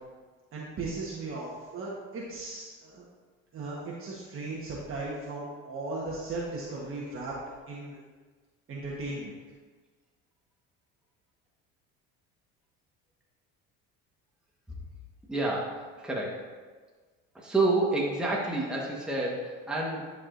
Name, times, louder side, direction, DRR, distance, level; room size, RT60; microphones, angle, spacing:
voice 1, 0.5-3.0 3.5-7.3 7.7-8.0 8.7-9.3, right 2 dB, 45° right, -5 dB, 1.3 m, -37 dB
voice 2, 15.3-16.5 17.3-20.1, right 2 dB, 5° right, -4 dB, 1.3 m, -29 dB
11.0 x 4.8 x 2.6 m, 1.4 s
supercardioid pair, 95°, 31 cm